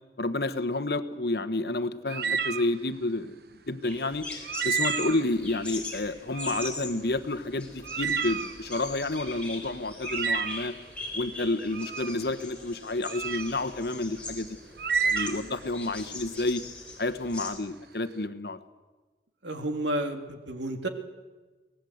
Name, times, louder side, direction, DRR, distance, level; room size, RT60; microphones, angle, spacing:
voice 1, 0.2-3.3 3.7-4.2 4.6-10.7 11.1-14.6 15.0-16.6 17.0-18.6, left 2 dB, 60° left, 10 dB, 1.2 m, -30 dB
sound 1, 2.1-2.7 4.4-5.3 6.3-6.7 7.1-7.2 7.8-9.2 10.0-10.7 11.7-12.2 13.0-13.5 14.8-15.6, right 6 dB, 55° right, 0.9 m, -30 dB
sound 2, 3.8-17.6, left 3 dB, 5° left, 4.0 m, -41 dB
voice 2, 19.4-20.9, right 1 dB, 90° right, 6 dB, 2.1 m, -31 dB
23.5 x 18.5 x 8.0 m, 1.3 s
head